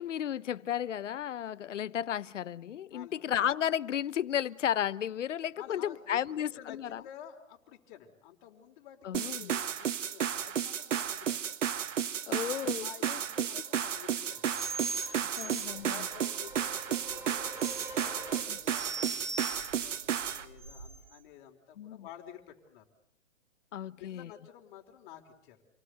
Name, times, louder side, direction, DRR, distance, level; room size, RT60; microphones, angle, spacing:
voice 1, 0.0-7.0 9.0-9.5 12.3-13.6 15.0-16.0 18.5-18.6 21.8-22.0 23.7-24.3, left 10 dB, 65° left, 1.1 m, -34 dB
voice 2, 5.6-11.4 12.2-14.5 15.4-17.6 17.9-22.8 24.0-25.6, left 10 dB, 40° left, 4.9 m, -51 dB
sound 1, 9.1-20.4, right 9 dB, 65° right, 1.7 m, -33 dB
sound 2, 12.8-18.4, right 1 dB, 5° right, 2.9 m, -49 dB
sound 3, 14.5-21.2, right 4 dB, 85° right, 3.7 m, -42 dB
29.0 x 19.5 x 9.6 m
hypercardioid pair, 140°, 39 cm